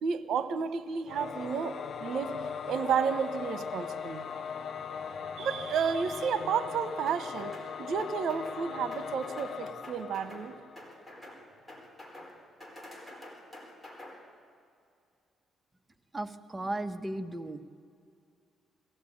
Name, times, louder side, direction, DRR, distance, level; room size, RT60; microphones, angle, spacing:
voice 1, 0.0-4.4 5.2-10.5, right 6 dB, 70° right, 12 dB, 1.2 m, -32 dB
Singing / Musical instrument, 1.1-11.1, left 7 dB, 50° left, 0.9 m, -39 dB
sound 1, 7.1-7.7 8.0-8.6 8.9-9.5 9.8-10.5 10.7-11.4 11.7-12.3 12.6-14.1, left 1 dB, 10° left, 4.3 m, -47 dB
voice 2, 16.1-17.6, right 1 dB, 15° right, 7 dB, 1.2 m, -35 dB
20.5 x 16.0 x 8.7 m, 2.4 s
cardioid pair, 90°, 0 cm